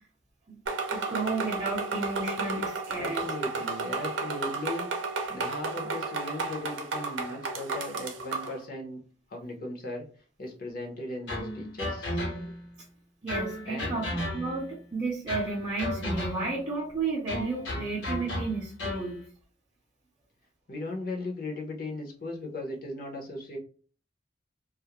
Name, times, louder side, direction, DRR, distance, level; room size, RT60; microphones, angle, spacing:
sound 1, 0.7-8.6, right 3 dB, 85° right, 0.5 m, -33 dB
voice 1, 0.9-3.2 13.2-19.2, right 3 dB, 25° right, -5 dB, 0.6 m, -32 dB
voice 2, 3.0-4.9 5.3-9.0 9.3-10.1 10.4-12.2 13.6-14.1 20.7-23.6, left 2 dB, 50° left, 1 dB, 0.6 m, -37 dB
sound 2, 11.3-12.7 13.3-14.7 15.3-16.6 17.3-19.1, left 1 dB, 75° left, 1.0 m, -34 dB
2.3 x 2.0 x 2.8 m, 0.40 s
head